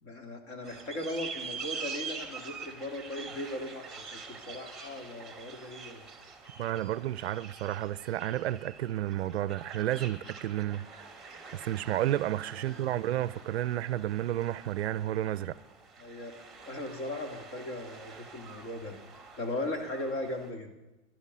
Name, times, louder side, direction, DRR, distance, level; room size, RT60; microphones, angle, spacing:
voice 1, 0.0-6.0 12.5-13.0 16.0-16.3 16.6-18.9 19.4-20.7, left 1 dB, 35° left, 3.0 m, -38 dB
sound 1, 0.6-20.5, right 5 dB, ahead, 2.2 m, -46 dB
voice 2, 6.6-10.9 11.5-15.6, right 13 dB, 55° right, 0.6 m, -31 dB
18.0 x 12.0 x 5.6 m
hypercardioid pair, 140°, 37 cm